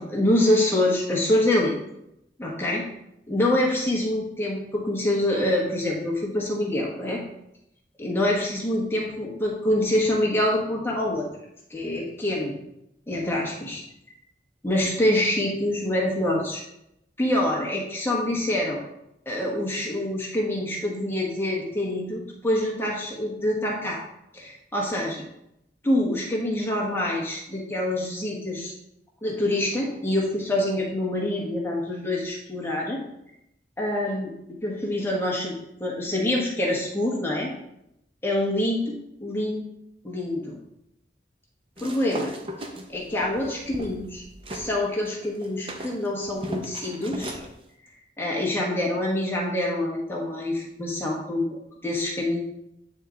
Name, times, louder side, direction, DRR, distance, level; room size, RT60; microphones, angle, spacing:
voice 1, 0.0-1.8 2.4-2.8 3.3-7.2 8.0-11.3 11.7-12.5 13.1-13.8 14.6-16.6 17.2-18.8 19.2-24.0 24.3-25.2 25.8-28.7 29.2-33.0 33.8-34.3 34.6-37.5 38.2-38.9 39.2-39.7 40.0-40.5 41.8-42.3 42.9-44.2 44.5-47.4 48.2-52.4, left 1 dB, 15° left, -3 dB, 1.3 m, -26 dB
sound 1, 41.8-44.7 45.1-47.5, equal, 30° right, 0.7 m, -37 dB
8.6 x 3.6 x 3.8 m, 0.83 s
head